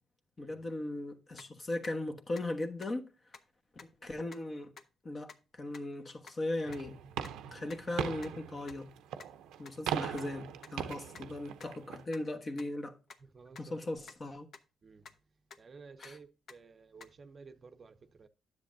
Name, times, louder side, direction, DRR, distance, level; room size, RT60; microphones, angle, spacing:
voice 1, 0.4-3.1 3.8-4.7 5.0-7.0 7.5-8.9 9.6-13.0 13.6-14.5 16.0-16.2, left 2 dB, 35° left, 1.2 m, -38 dB
sound 1, 1.4-1.5 1.8-1.9 2.3-2.4 2.8-2.9 3.3-3.4 3.8-3.9 4.3-4.4 4.8-4.9 5.3-5.4 5.7-5.8 6.3-6.4 6.7-6.8 7.2-7.3 7.7-7.8 8.2-8.3 8.7-8.8 9.2-9.3 9.7-9.8 10.2-10.3 10.6-10.7 11.1-11.2 11.6-11.7 12.1-12.2 12.6-12.7 13.1-13.2 13.6-13.7 14.1-14.2 14.5-14.6 15.1-15.2 15.5-15.6 16.0-16.1 16.5-16.6 17.0-17.1, left 5 dB, 55° left, 0.8 m, -50 dB
sound 2, 6.7-12.0, right 9 dB, 90° right, 0.6 m, -40 dB
voice 2, 13.3-13.9 14.8-15.1 15.6-18.3, right 4 dB, 40° right, 0.6 m, -54 dB
9.9 x 7.4 x 2.6 m
cardioid pair, 90°, 0 cm